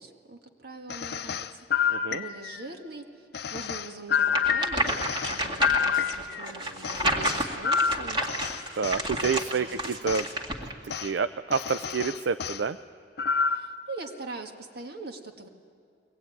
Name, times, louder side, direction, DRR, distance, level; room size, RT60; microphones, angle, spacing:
voice 1, 0.0-8.2 9.1-9.2 9.6-9.8 13.5-15.5, right 3 dB, 60° right, 4 dB, 1.8 m, -43 dB
sound 1, 0.9-2.7 3.3-6.5 6.8-9.4 10.1-10.3 10.9-11.1 11.5-12.6 13.2-13.8, left 7 dB, 65° left, 0.6 m, -28 dB
voice 2, 1.9-2.2 8.7-10.3 10.8-12.8, right 5 dB, 80° right, 11 dB, 0.5 m, -28 dB
sound 2, 4.3-10.7, right 1 dB, 25° right, 2.1 m, -30 dB
23.0 x 19.0 x 9.2 m, 2.5 s
head